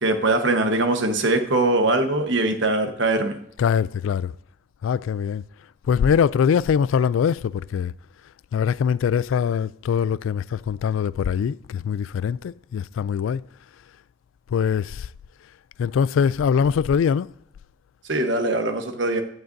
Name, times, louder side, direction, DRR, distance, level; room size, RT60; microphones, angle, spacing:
voice 1, 0.0-3.4 18.1-19.2, right 2 dB, 65° right, 1.2 m, -22 dB
voice 2, 3.6-4.3 4.8-5.4 5.9-7.9 8.5-13.4 14.5-15.1 15.8-17.3, left 7 dB, 80° left, 0.3 m, -22 dB
16.5 x 11.5 x 2.6 m
head